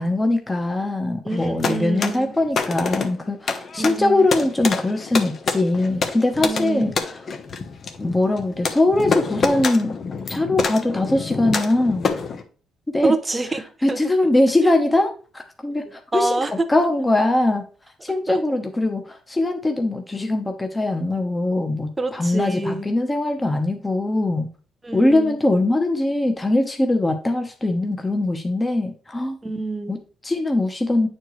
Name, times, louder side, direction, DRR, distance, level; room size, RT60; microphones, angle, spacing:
voice 1, 0.0-7.2 8.0-10.0 10.3-12.1 12.9-13.1 13.8-17.6 18.0-24.5 24.9-29.4 29.9-31.1, left 2 dB, 15° left, 5 dB, 1.1 m, -21 dB
voice 2, 1.2-2.3 3.8-4.3 6.4-6.9 13.0-14.0 16.1-16.5 18.3-18.4 22.0-22.9 24.8-25.4 29.4-30.0, right 3 dB, 20° right, 8 dB, 1.0 m, -26 dB
sound 1, 1.3-12.4, left 4 dB, 50° left, 1.0 m, -27 dB
9.1 x 4.4 x 3.2 m, 0.39 s
cardioid pair, 90°, 0 cm